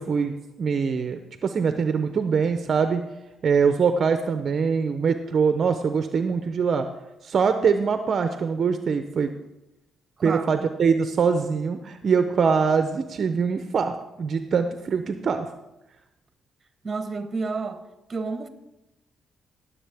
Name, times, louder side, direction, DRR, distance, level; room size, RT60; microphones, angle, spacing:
voice 1, 0.0-3.0 3.4-6.9 7.2-9.3 10.2-15.5, right 5 dB, 50° right, 8 dB, 0.6 m, -23 dB
voice 2, 10.2-10.5 16.8-17.8 18.1-18.5, right 4 dB, 30° right, 9 dB, 1.0 m, -30 dB
18.5 x 7.2 x 3.5 m, 0.93 s
cardioid pair, 90°, 0 cm